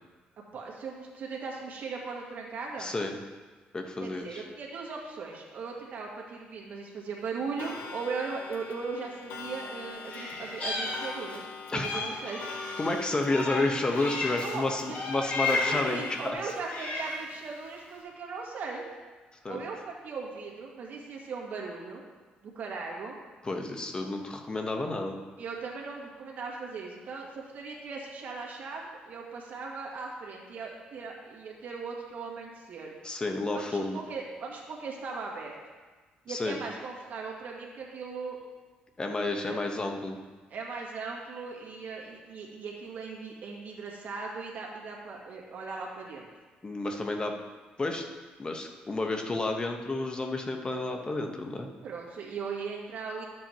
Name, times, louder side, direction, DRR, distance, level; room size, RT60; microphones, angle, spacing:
voice 1, 0.4-2.9 4.0-12.4 14.4-14.6 15.4-18.8 19.5-22.0 22.4-23.2 25.4-32.9 33.5-35.5 36.3-38.4 39.4-39.7 40.5-46.3 51.8-53.3, right 4 dB, 60° right, -1 dB, 2.1 m, -38 dB
voice 2, 2.8-3.1 3.7-4.4 11.7-12.2 12.8-16.4 19.4-19.6 23.4-25.2 33.0-34.0 36.3-36.6 39.0-40.2 46.6-47.3 47.8-48.0 48.4-51.7, left 2 dB, 25° left, 3 dB, 1.2 m, -31 dB
Clock, 7.6-16.3, left 5 dB, 85° left, 1.0 m, -42 dB
Meow, 10.1-11.4 11.8-14.6 14.9-15.9 16.5-17.3, left 3 dB, 50° left, 2.7 m, -34 dB
12.5 x 7.6 x 3.1 m, 1.3 s
cardioid pair, 85°, 3 cm